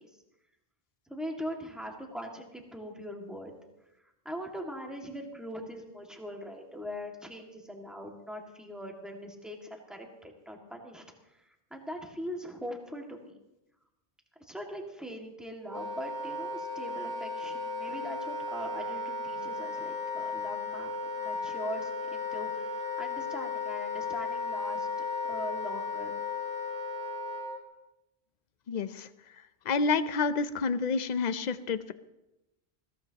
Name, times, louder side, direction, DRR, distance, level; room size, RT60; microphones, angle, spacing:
voice 1, 1.1-3.5 4.2-13.3 14.4-20.9 21.2-26.1, equal, ahead, 1 dB, 2.0 m, -41 dB
Wind instrument woodwind instrument, 15.6-27.6, left 3 dB, 75° left, 3.0 m, -35 dB
voice 2, 28.7-29.1 29.7-31.9, left 4 dB, 50° left, 13 dB, 0.7 m, -29 dB
21.0 x 16.0 x 2.9 m, 0.93 s
omnidirectional pair, 1.1 m